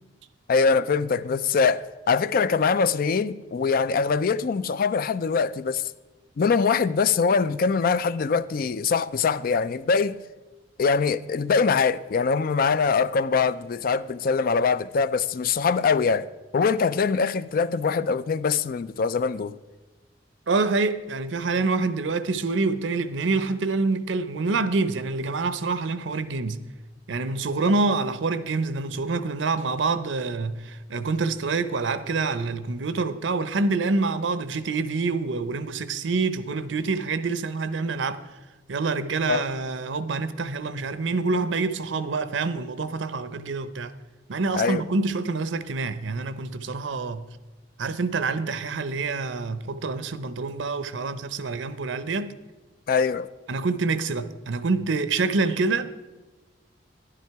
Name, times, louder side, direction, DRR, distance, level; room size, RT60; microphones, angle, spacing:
voice 1, 0.5-5.8 6.4-10.1 10.8-16.3 16.5-19.6 39.3-39.5 44.5-44.8 52.9-53.3, left 5 dB, 50° left, 0.4 m, -23 dB
voice 2, 20.5-26.6 27.1-38.2 38.7-43.9 44.3-47.2 47.8-52.3 53.5-56.1, right 3 dB, 85° right, 0.7 m, -26 dB
12.0 x 11.0 x 4.6 m
head